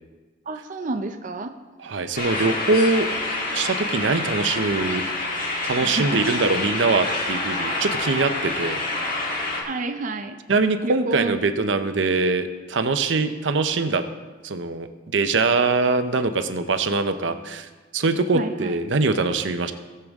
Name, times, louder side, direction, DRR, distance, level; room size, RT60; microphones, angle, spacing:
voice 1, 0.5-1.5 5.7-6.2 9.6-10.4 10.8-11.4 18.3-18.8, right 3 dB, 45° right, 6 dB, 0.5 m, -29 dB
voice 2, 1.8-3.1 3.5-5.0 5.6-8.8 10.5-14.0 14.4-14.9 15.1-17.7 17.9-19.7, right 3 dB, 80° right, 9 dB, 0.7 m, -22 dB
sound 1, 2.2-9.6, left 2 dB, 50° left, 1.9 m, -27 dB
18.0 x 6.8 x 3.6 m, 1.3 s
head